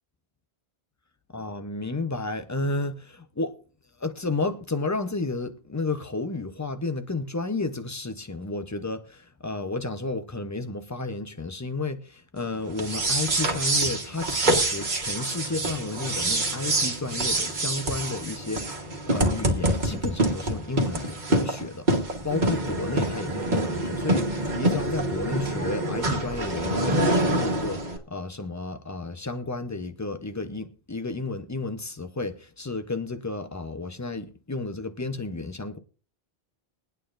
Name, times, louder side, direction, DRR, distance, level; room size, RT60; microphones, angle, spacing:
voice 1, 1.3-3.6 4.0-21.9 22.2-35.8, left 3 dB, 20° left, 0.7 m, -32 dB
sound 1, 12.7-28.0, right 1 dB, 45° right, 1.5 m, -26 dB
21.5 x 9.2 x 2.5 m
omnidirectional pair, 1.1 m